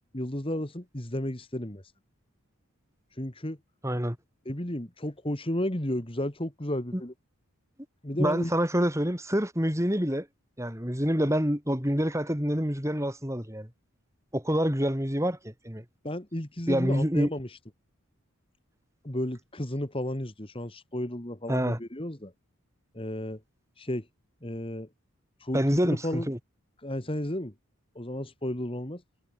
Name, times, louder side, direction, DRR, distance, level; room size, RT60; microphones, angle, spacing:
voice 1, 0.1-1.8 3.1-3.6 4.5-7.1 8.0-8.5 16.0-17.6 19.0-22.3 22.9-23.4 23.8-24.1 24.4-24.9 25.4-26.3 26.8-27.5 28.0-29.0, left 1 dB, 25° left, 2.1 m, -33 dB
voice 2, 3.8-4.2 6.9-7.0 8.1-10.3 10.6-13.7 14.3-15.8 16.7-17.3 21.5-21.8 25.5-26.4, equal, 15° right, 5.7 m, -27 dB
head